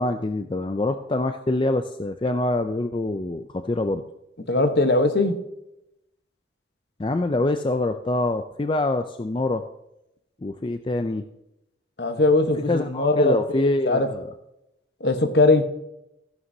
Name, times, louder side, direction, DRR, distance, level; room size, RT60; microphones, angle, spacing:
voice 1, 0.0-4.0 7.0-9.6 10.4-11.2 12.7-14.3, left 2 dB, 25° left, 8 dB, 0.4 m, -25 dB
voice 2, 4.5-5.3 12.0-14.1 15.0-15.6, left 2 dB, 60° left, 7 dB, 1.1 m, -20 dB
15.0 x 11.0 x 2.7 m, 0.86 s
head